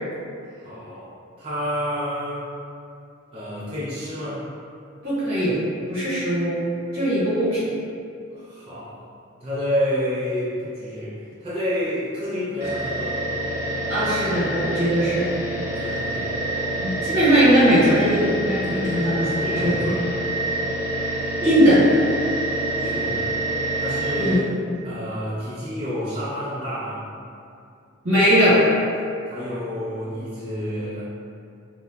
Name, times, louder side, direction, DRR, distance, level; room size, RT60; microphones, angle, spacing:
voice 1, 0.6-1.1 1.4-2.4 3.3-4.4 8.3-9.1 9.4-13.2 15.6-16.7 19.2-20.2 22.8-23.3 23.7-24.4 24.8-27.0 29.3-31.0, equal, 30° right, -10 dB, 0.4 m, -29 dB
voice 2, 5.0-5.6 5.9-6.6 6.9-7.6 13.9-15.3 16.8-19.1 19.6-19.7 21.4-21.8 24.2-24.4 28.0-28.6, right 1 dB, 80° right, -10 dB, 1.0 m, -19 dB
sound 1, 12.6-24.4, right 1 dB, 10° right, 0.9 m, -27 dB
2.8 x 2.0 x 2.2 m, 2.5 s
head